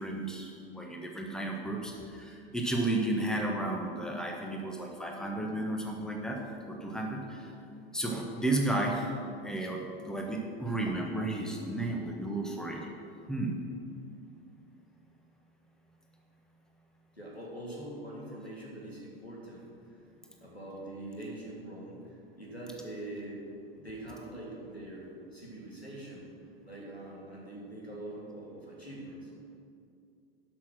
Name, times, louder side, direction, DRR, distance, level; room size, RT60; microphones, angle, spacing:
voice 1, 0.0-6.4 6.6-7.5 7.9-9.1 9.4-12.9 13.3-13.5, right 2 dB, ahead, 1 dB, 1.3 m, -33 dB
voice 2, 17.1-20.0 20.4-23.5 23.8-26.3 26.6-29.3, right 1 dB, 90° left, -3 dB, 2.6 m, -43 dB
12.0 x 6.2 x 6.2 m, 2.4 s
figure-of-eight pair, 85°, 31 cm